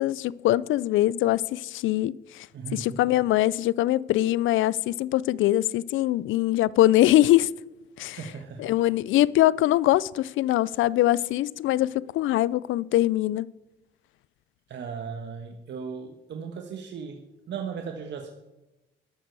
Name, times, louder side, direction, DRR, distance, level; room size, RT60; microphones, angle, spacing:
voice 1, 0.0-2.5 2.7-7.5 8.0-8.2 8.6-13.5, left 15 dB, 80° left, 0.4 m, -23 dB
voice 2, 2.5-3.0 8.1-8.8 14.7-18.3, right 6 dB, 65° right, 1.4 m, -37 dB
12.5 x 12.0 x 4.7 m
cardioid pair, 90°, 20 cm